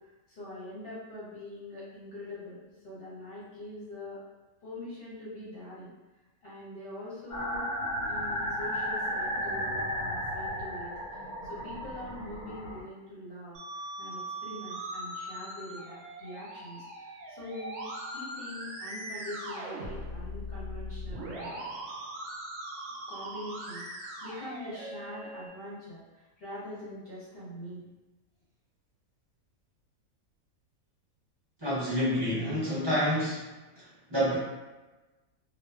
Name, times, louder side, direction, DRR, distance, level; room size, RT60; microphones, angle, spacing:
voice 1, 0.0-4.2 4.6-5.9 6.4-7.6 8.1-21.6 23.1-27.9, left 1 dB, 50° left, -9 dB, 0.8 m, -43 dB
sound 1, 7.3-12.8, equal, 90° left, 1.1 m, -34 dB
Musical instrument, 13.5-25.5, right 1 dB, 70° right, 0.9 m, -40 dB
voice 2, 31.6-33.5 33.8-34.4, equal, 25° right, -11 dB, 0.6 m, -28 dB
2.5 x 2.2 x 2.3 m, 1.1 s
omnidirectional pair, 1.5 m